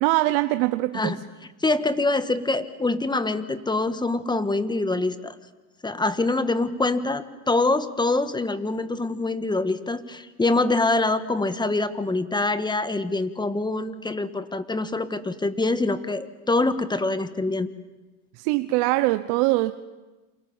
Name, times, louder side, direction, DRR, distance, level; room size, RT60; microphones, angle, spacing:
voice 1, 0.0-1.2 18.4-19.8, right 19 dB, 65° right, 12 dB, 1.0 m, -22 dB
voice 2, 1.6-5.4 5.8-17.7, left 2 dB, 10° left, 11 dB, 1.6 m, -25 dB
28.5 x 27.0 x 7.4 m, 1.2 s
supercardioid pair, 110°, 46 cm